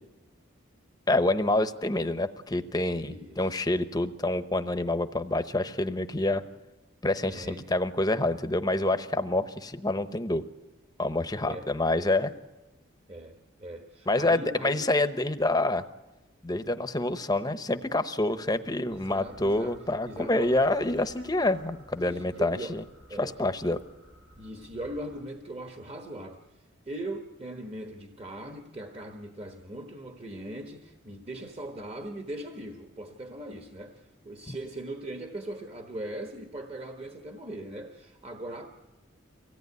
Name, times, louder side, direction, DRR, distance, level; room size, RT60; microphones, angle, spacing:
voice 1, 1.1-6.4 7.0-10.4 11.0-12.3 14.1-15.8 16.4-22.8 23.2-23.8 34.5-34.6, left 2 dB, 20° left, 10 dB, 0.9 m, -27 dB
voice 2, 3.0-3.5 7.2-7.6 11.4-11.7 12.2-12.3 13.1-14.8 18.2-18.5 18.9-19.8 20.1-20.5 22.0-22.7 23.1-23.3 23.6-23.7 24.4-38.7, right 1 dB, 30° right, 3 dB, 1.3 m, -40 dB
sound 1, 18.9-25.2, equal, 60° right, 7.2 m, -55 dB
24.0 x 17.5 x 9.6 m, 1.1 s
head